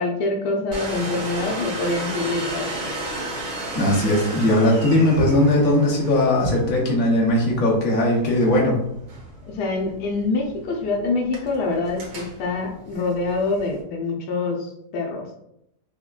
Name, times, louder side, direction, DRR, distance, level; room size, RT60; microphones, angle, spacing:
voice 1, 0.0-2.9 9.5-15.3, left 3 dB, 90° left, 0 dB, 1.2 m, -25 dB
Domestic sounds home sounds, 0.7-13.8, right 1 dB, 75° right, 1.5 m, -34 dB
voice 2, 3.7-8.8, left 1 dB, 60° left, -3 dB, 1.3 m, -19 dB
5.7 x 2.2 x 2.3 m, 0.78 s
omnidirectional pair, 1.7 m